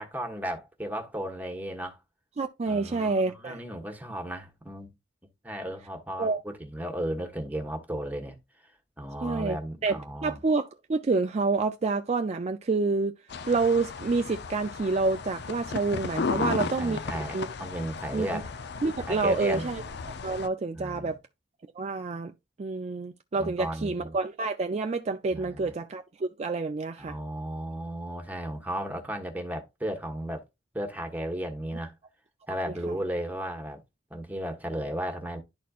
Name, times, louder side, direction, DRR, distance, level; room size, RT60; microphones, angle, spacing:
voice 1, 0.0-2.0 2.7-4.9 5.4-8.4 9.0-10.4 16.3-18.5 19.1-19.7 20.7-21.1 23.4-24.2 25.3-25.7 27.0-30.4 30.7-31.9 32.5-33.8 34.1-35.4, right 1 dB, 10° right, 1.3 m, -35 dB
voice 2, 2.4-3.6 6.2-6.4 9.2-9.6 9.8-13.1 13.5-17.0 17.3-17.5 18.1-18.4 18.8-19.8 20.2-21.2 21.8-22.3 22.6-27.2 32.9-33.0, right 3 dB, 35° right, 0.4 m, -28 dB
sound 1, 13.3-20.5, left 4 dB, 65° left, 0.6 m, -35 dB
11.5 x 4.2 x 2.4 m
head